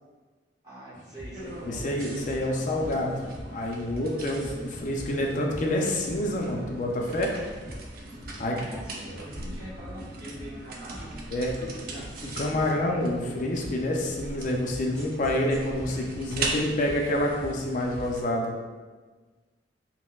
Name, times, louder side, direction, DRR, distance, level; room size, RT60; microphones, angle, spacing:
voice 1, 0.6-2.0 8.3-11.2 11.6-12.1, right 1 dB, 20° right, -10 dB, 1.1 m, -44 dB
sound 1, 0.9-18.2, equal, 10° left, 1.2 m, -45 dB
sound 2, 1.3-18.2, right 2 dB, 55° right, 0.4 m, -39 dB
voice 2, 1.7-3.2 3.5-7.3 8.4-8.6 11.3-11.7 12.4-18.5, left 1 dB, 45° left, 0 dB, 0.4 m, -28 dB
4.1 x 2.0 x 2.3 m, 1.3 s
head